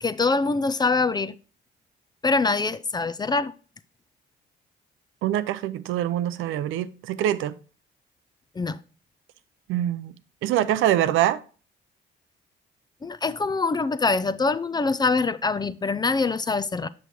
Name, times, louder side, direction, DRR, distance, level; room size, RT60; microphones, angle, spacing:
voice 1, 0.0-1.3 2.2-3.5 8.6-8.8 13.0-16.9, left 3 dB, 20° left, 0.4 m, -24 dB
voice 2, 5.2-7.6 9.7-10.1 10.4-11.4, right 12 dB, 90° right, 0.5 m, -24 dB
6.8 x 6.2 x 3.0 m
cardioid pair, 90°, 20 cm